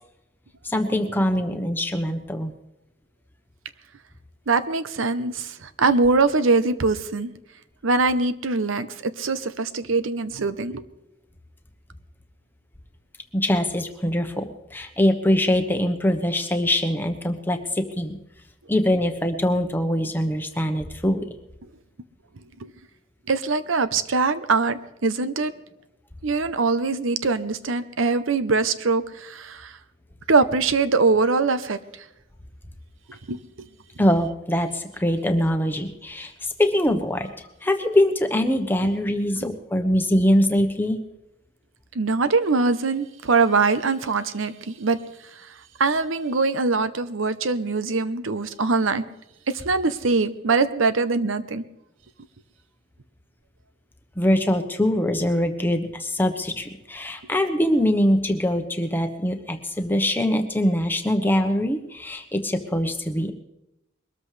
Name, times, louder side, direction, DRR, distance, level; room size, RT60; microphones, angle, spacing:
voice 1, 0.6-2.5 13.3-14.4 14.7-18.2 18.7-21.2 34.0-41.0 54.2-63.3, left 1 dB, 10° left, 5 dB, 1.0 m, -23 dB
voice 2, 4.5-7.3 7.8-10.8 22.6-22.7 23.3-25.5 26.2-29.8 30.3-31.8 33.3-33.7 41.9-45.0 45.8-49.0 49.5-51.6, right 4 dB, 80° right, 12 dB, 0.8 m, -22 dB
22.5 x 13.5 x 3.3 m, 0.89 s
head